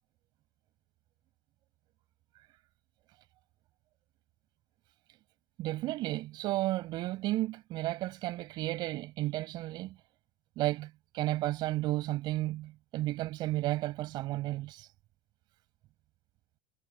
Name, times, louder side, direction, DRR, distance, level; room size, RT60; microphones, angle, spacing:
voice 1, 5.6-9.9 10.6-14.9, right 17 dB, 40° right, 6.7 m, -33 dB
cardioid pair, 180°, 12 cm